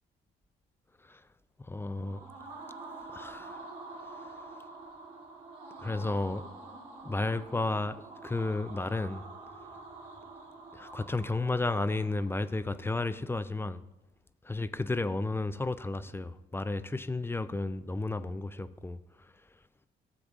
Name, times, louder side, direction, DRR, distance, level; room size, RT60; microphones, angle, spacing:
voice 1, 1.6-2.2 3.1-3.6 5.8-6.5 7.0-9.2 10.7-13.8 14.4-19.3, left 2 dB, 10° left, 0.4 m, -33 dB
sound 1, 1.8-12.7, right 3 dB, 85° right, 2.8 m, -47 dB
13.5 x 7.8 x 2.4 m
cardioid pair, 90°, 20 cm